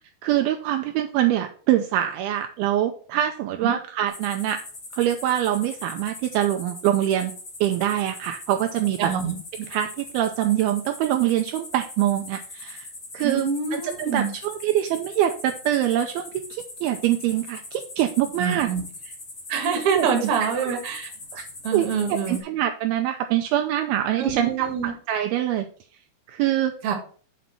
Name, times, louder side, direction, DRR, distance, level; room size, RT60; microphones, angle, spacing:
voice 1, 0.2-4.6 4.9-7.3 7.6-9.1 9.6-12.9 13.1-18.7 19.0-19.1 20.0-20.8 21.3-21.4 21.7-25.7 26.3-26.7, right 12 dB, 80° right, 6 dB, 2.3 m, -24 dB
sound 1, 4.1-22.4, left 2 dB, 30° left, 2.2 m, -41 dB
voice 2, 9.0-9.4 13.2-14.3 18.4-18.8 19.5-21.1 21.6-22.4 24.2-24.9 26.8-26.9, right 6 dB, 55° right, 3 dB, 1.8 m, -25 dB
7.5 x 4.1 x 5.9 m, 0.43 s
omnidirectional pair, 4.7 m